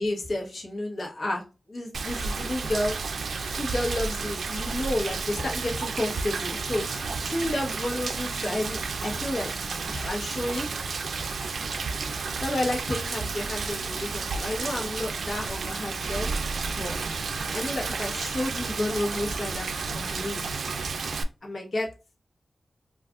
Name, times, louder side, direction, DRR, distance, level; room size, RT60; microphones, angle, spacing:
voice 1, 0.0-2.9 3.6-6.9 7.2-9.5 9.8-10.7 12.4-16.3 16.7-17.0 17.5-20.5 21.4-21.9, left 1 dB, 50° left, -1 dB, 1.1 m, -31 dB
Rain, 1.9-21.2, right 4 dB, 85° right, 0.3 m, -32 dB
sound 1, 5.4-17.5, left 1 dB, 25° left, 1.5 m, -50 dB
2.5 x 2.4 x 3.5 m, 0.30 s
wide cardioid pair, 120°, 0 cm